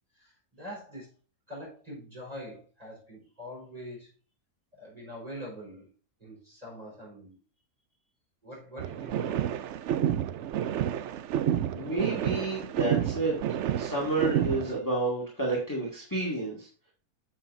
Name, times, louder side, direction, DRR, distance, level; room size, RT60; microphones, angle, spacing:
voice 1, 0.1-1.1 1.5-4.1 4.7-5.9 6.2-7.4 8.4-9.6, equal, 25° right, -4 dB, 4.7 m, -44 dB
sound 1, 8.8-14.8, right 10 dB, 65° right, 0.7 m, -30 dB
voice 2, 11.7-13.3 13.7-16.7, right 2 dB, 10° left, -3 dB, 2.2 m, -30 dB
8.3 x 7.6 x 2.6 m, 0.34 s
omnidirectional pair, 1.6 m